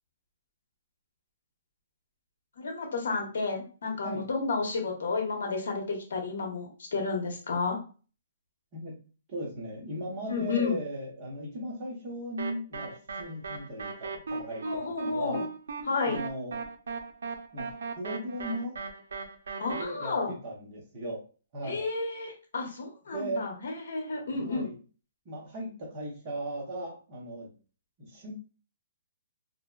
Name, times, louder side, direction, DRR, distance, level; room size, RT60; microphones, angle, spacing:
voice 1, 2.6-7.8 10.3-10.8 14.7-15.4 15.8-16.2 19.6-20.3 21.6-24.7, left 4 dB, 65° left, 2 dB, 0.9 m, -31 dB
voice 2, 9.3-15.4 16.0-16.6 17.5-18.8 19.6-21.2 21.5-21.9 23.1-23.5 24.3-24.8 25.3-27.5 28.0-28.4, right 1 dB, 25° right, -2 dB, 0.7 m, -37 dB
sound 1, 12.4-19.8, right 4 dB, 75° right, 0.5 m, -37 dB
2.6 x 2.1 x 2.2 m, 0.36 s
hypercardioid pair, 175°, 0 cm